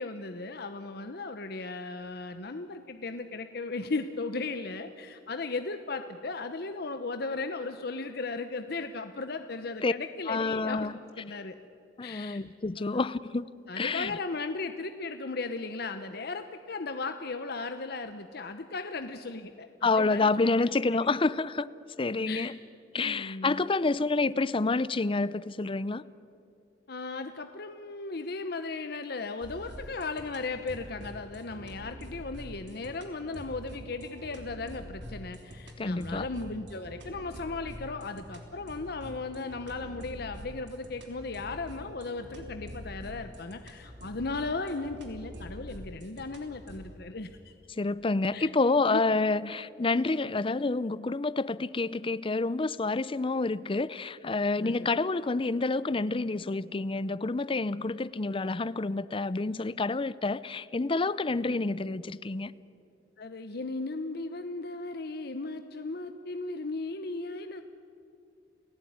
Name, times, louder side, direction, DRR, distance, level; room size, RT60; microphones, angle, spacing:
voice 1, 0.0-10.9 11.2-11.5 12.0-12.4 12.8-13.0 13.7-19.7 19.9-20.7 22.3-22.5 23.0-23.6 26.9-47.5 48.3-48.5 48.9-49.0 54.6-54.9 63.2-67.6, left 3 dB, 60° left, 0.9 m, -36 dB
voice 2, 10.3-11.0 12.0-13.5 13.8-14.2 19.8-21.7 22.0-22.6 22.9-26.0 35.8-36.3 47.7-62.5, left 3 dB, 30° left, 0.6 m, -28 dB
sound 1, 29.4-47.0, equal, 85° right, 3.5 m, -45 dB
29.5 x 16.5 x 9.5 m
head